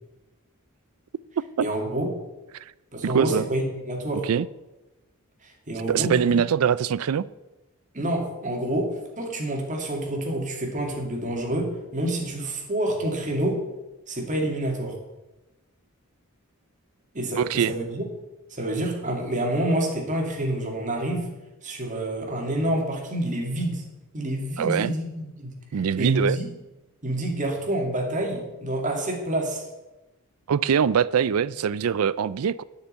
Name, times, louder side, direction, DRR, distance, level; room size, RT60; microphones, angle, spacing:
voice 1, 1.6-2.1 2.9-4.3 5.4-6.4 7.9-13.6 14.1-14.9 17.1-18.0 18.5-21.3 21.6-23.8 24.1-25.6 26.0-26.5 27.0-29.6, right 1 dB, 35° right, 0 dB, 2.5 m, -28 dB
voice 2, 3.0-3.4 4.2-4.5 5.9-7.3 17.4-17.7 24.6-25.0 25.7-26.4 30.5-32.6, right 7 dB, 80° right, 18 dB, 0.4 m, -23 dB
9.7 x 6.7 x 8.6 m, 1.0 s
head